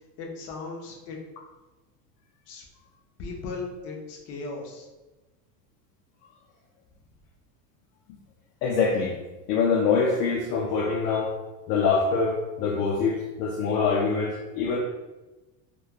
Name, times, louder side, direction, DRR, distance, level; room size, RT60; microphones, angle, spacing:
voice 1, 0.2-1.2 2.5-2.6 3.2-4.9, left 3 dB, 35° left, 0 dB, 0.5 m, -37 dB
voice 2, 8.6-9.2 9.5-11.3 11.7-14.8, left 5 dB, 85° left, -1 dB, 0.5 m, -24 dB
3.0 x 2.2 x 2.3 m, 1.1 s
supercardioid pair, 120°, 48 cm